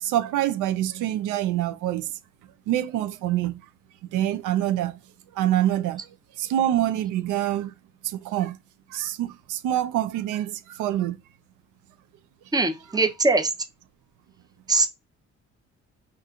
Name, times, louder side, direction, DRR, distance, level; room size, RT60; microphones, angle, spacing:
voice 1, 0.0-2.1 2.7-3.6 4.1-5.0 5.3-6.0 6.4-7.7 8.0-8.6 8.9-11.2, right 12 dB, 90° right, 0.5 m, -25 dB
voice 2, 12.5-13.5 14.7-14.9, right 3 dB, 15° right, 0.6 m, -21 dB
4.2 x 2.5 x 2.4 m
cardioid pair, 90°, 30 cm